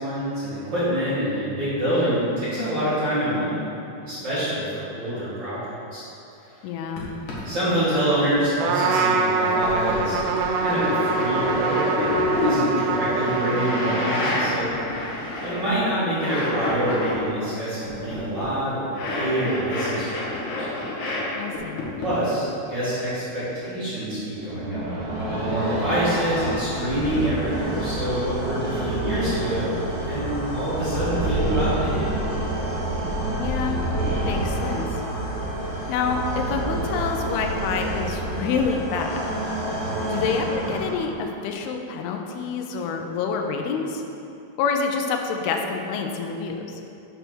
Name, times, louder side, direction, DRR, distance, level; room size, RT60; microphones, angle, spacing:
voice 1, 0.0-3.6 4.0-6.0 7.4-10.2 10.6-12.2 12.4-15.0 15.4-20.7 22.0-24.8 25.2-29.7 30.1-32.1, right 1 dB, 40° right, -12 dB, 1.7 m, -26 dB
voice 2, 6.6-7.1 21.4-21.8 33.3-34.9 35.9-39.1 40.1-44.0 44.6-46.7, left 5 dB, 80° left, 3 dB, 2.4 m, -27 dB
sound 1, 7.0-7.1 7.3-7.4 7.9-8.3 8.9-9.0 9.6-15.9 16.1-17.3 17.8-21.2 21.5-22.1, left 2 dB, 60° left, 2.4 m, -28 dB
Trumpet, 8.6-14.8, right 4 dB, 90° right, 2.7 m, -24 dB
sound 2, 24.3-41.3, right 1 dB, 70° right, 1.4 m, -28 dB
6.8 x 4.4 x 6.1 m, 2.8 s
omnidirectional pair, 4.8 m